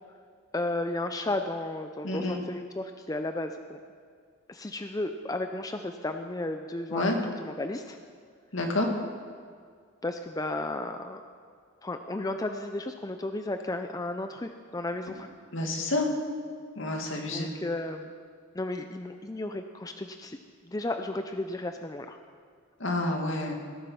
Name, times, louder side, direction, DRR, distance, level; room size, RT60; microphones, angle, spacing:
voice 1, 0.5-3.8 4.5-8.0 10.0-11.2 11.8-15.3 17.2-18.1 18.5-20.4 20.6-22.2, left 2 dB, 15° left, 6 dB, 0.5 m, -34 dB
voice 2, 2.0-2.4 6.9-7.2 8.5-8.9 15.5-16.1 16.8-17.5 22.8-23.5, left 2 dB, 65° left, 1 dB, 2.4 m, -28 dB
19.0 x 12.0 x 5.7 m, 2.1 s
head